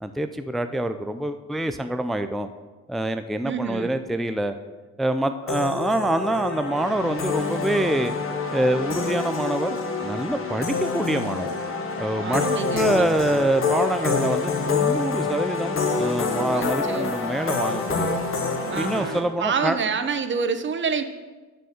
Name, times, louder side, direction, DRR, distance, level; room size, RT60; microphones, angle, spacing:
voice 1, 0.0-2.5 2.9-4.5 5.0-8.1 8.5-11.5 12.0-12.4 12.7-18.2 18.7-19.8, right 1 dB, ahead, 9 dB, 0.4 m, -25 dB
voice 2, 3.4-3.9 12.2-12.8 16.5-17.1 18.7-21.0, right 6 dB, 40° right, 9 dB, 0.8 m, -27 dB
sound 1, 5.5-19.2, left 4 dB, 45° left, 1.3 m, -27 dB
6.9 x 6.4 x 6.5 m, 1.3 s
cardioid pair, 90°, 30 cm